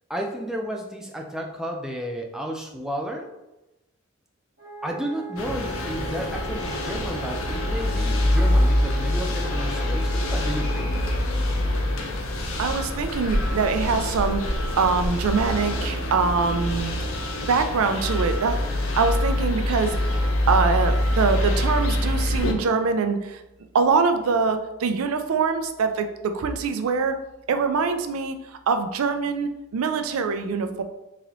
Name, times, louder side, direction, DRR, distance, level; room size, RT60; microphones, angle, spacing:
voice 1, 0.1-3.3 4.8-11.0, equal, 5° right, 1 dB, 0.3 m, -32 dB
Wind instrument woodwind instrument, 4.6-11.2, right 7 dB, 60° right, 1.3 m, -40 dB
sound 1, 5.4-22.5, left 1 dB, 80° left, 0.6 m, -25 dB
voice 2, 12.6-14.4 14.8-16.9 17.5-20.0 20.5-23.4 23.7-27.2 27.5-28.4 28.7-30.8, right 5 dB, 90° right, 8 dB, 0.4 m, -24 dB
3.8 x 3.1 x 3.0 m, 0.97 s
head